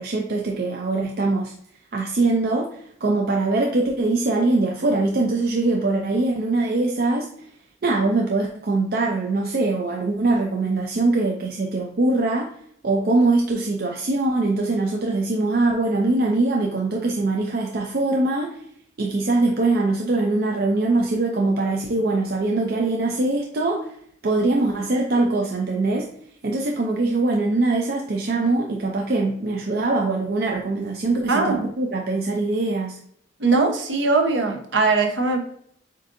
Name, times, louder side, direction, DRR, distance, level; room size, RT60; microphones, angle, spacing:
voice 1, 0.0-1.5 1.9-7.3 7.8-12.5 12.8-18.6 19.0-23.9 24.2-26.1 26.4-33.0, right 2 dB, 50° right, 1 dB, 0.5 m, -22 dB
voice 2, 31.3-31.7 33.4-35.4, right 3 dB, 70° right, 3 dB, 0.9 m, -20 dB
7.4 x 2.7 x 2.6 m, 0.68 s
head